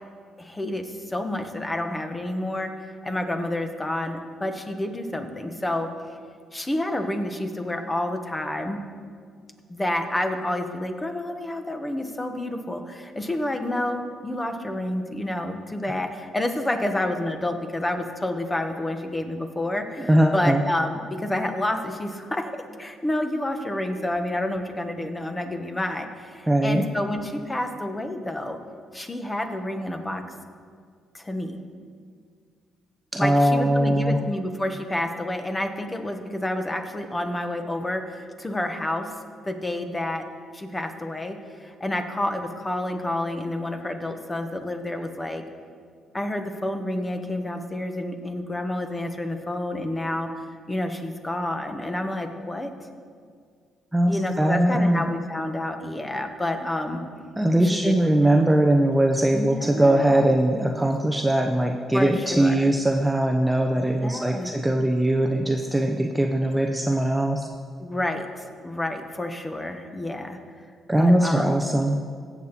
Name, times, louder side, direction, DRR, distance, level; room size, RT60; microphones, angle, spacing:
voice 1, 0.4-2.7 3.0-5.9 6.5-8.8 9.7-28.6 28.9-30.2 31.1-31.6 33.2-39.1 39.4-40.2 40.5-45.4 46.1-52.7 54.1-57.0 57.7-58.3 59.3-60.3 61.9-62.7 63.8-64.5 67.8-70.4 71.0-71.6, left 1 dB, 20° left, 6 dB, 1.2 m, -29 dB
voice 2, 20.0-20.6 26.5-26.9 33.1-34.2 53.9-55.0 57.4-67.5 70.9-72.0, right 1 dB, 10° right, 3 dB, 0.7 m, -21 dB
16.5 x 7.2 x 4.2 m, 2.1 s
supercardioid pair, 70°, 0 cm